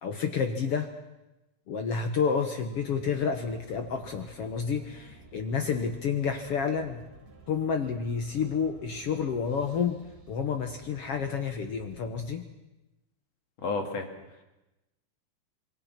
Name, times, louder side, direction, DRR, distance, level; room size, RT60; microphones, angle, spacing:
voice 1, 0.0-0.9 1.7-7.0 7.5-10.0 10.3-12.4, left 6 dB, 65° left, 6 dB, 1.5 m, -30 dB
sound 1, 2.7-12.4, right 3 dB, 85° right, 6.0 m, -53 dB
voice 2, 13.6-14.4, left 3 dB, 50° left, 4 dB, 3.0 m, -33 dB
26.5 x 22.5 x 5.9 m, 0.99 s
omnidirectional pair, 4.3 m